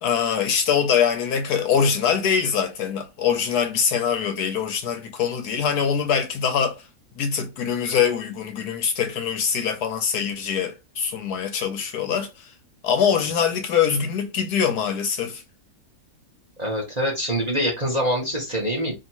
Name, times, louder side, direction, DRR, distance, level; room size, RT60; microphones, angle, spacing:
voice 1, 0.0-6.9 7.2-12.5 12.8-15.4, left 7 dB, 70° left, 1.0 m, -23 dB
voice 2, 16.6-19.0, equal, 30° right, 0.8 m, -25 dB
2.9 x 2.8 x 4.3 m
omnidirectional pair, 1.9 m